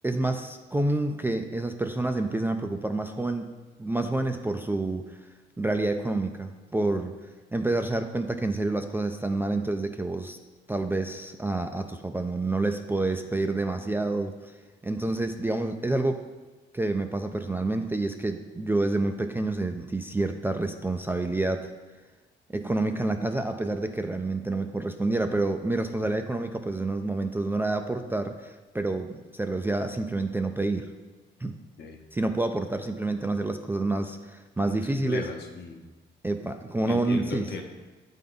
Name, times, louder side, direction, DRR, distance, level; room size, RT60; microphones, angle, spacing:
voice 1, 0.0-3.5 3.8-5.1 5.6-7.1 7.5-10.4 10.7-14.4 14.8-16.3 16.7-21.7 22.5-30.9 31.4-31.5 32.1-35.3 36.2-37.5, right 2 dB, 10° right, 5 dB, 0.3 m, -28 dB
voice 2, 34.9-35.8 36.9-37.6, left 5 dB, 60° left, 4 dB, 0.9 m, -36 dB
8.3 x 3.6 x 3.8 m, 1.2 s
cardioid pair, 90°, 20 cm